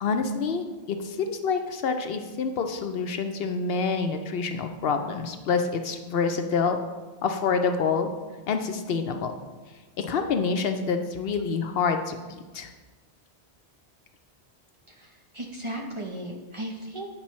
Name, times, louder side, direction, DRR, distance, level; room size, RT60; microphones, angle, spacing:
voice 1, 0.0-6.8 7.2-8.1 8.5-9.3 10.0-12.7, left 5 dB, 65° left, 6 dB, 0.7 m, -27 dB
voice 2, 14.9-17.1, right 1 dB, 35° right, 0 dB, 0.6 m, -36 dB
8.7 x 5.2 x 3.1 m, 1.3 s
omnidirectional pair, 1.1 m